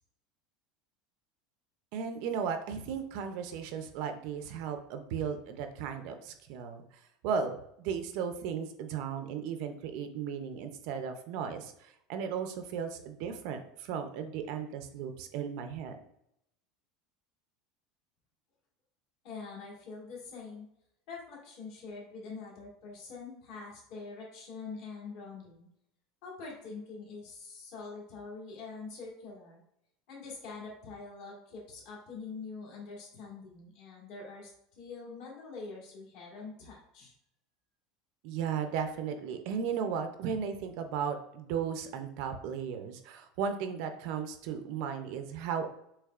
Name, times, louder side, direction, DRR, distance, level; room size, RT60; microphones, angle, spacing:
voice 1, 1.9-6.8 7.2-16.0 38.2-45.7, right 7 dB, 50° right, 7 dB, 0.4 m, -35 dB
voice 2, 19.2-20.6 21.1-25.7 26.2-29.6 30.1-34.5 34.8-37.1, left 4 dB, 50° left, -3 dB, 1.6 m, -44 dB
6.4 x 3.1 x 2.4 m, 0.76 s
cardioid pair, 180°, 0 cm